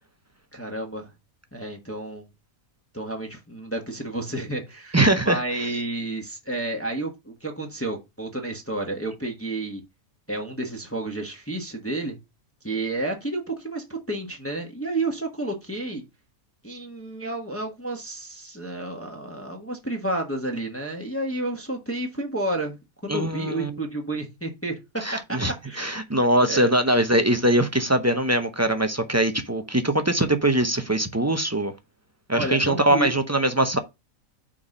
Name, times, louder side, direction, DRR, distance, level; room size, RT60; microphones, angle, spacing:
voice 1, 0.5-1.1 1.5-2.3 2.9-9.8 10.3-12.2 12.6-16.0 16.6-22.8 23.0-24.7 25.3-25.4 25.6-25.9 26.4-26.7 32.3-33.1, right 2 dB, 10° left, 1.2 m, -31 dB
voice 2, 4.9-5.7 23.1-23.8 25.0-31.7 32.3-33.8, right 1 dB, 20° right, 0.5 m, -22 dB
5.9 x 4.2 x 5.3 m
omnidirectional pair, 1.5 m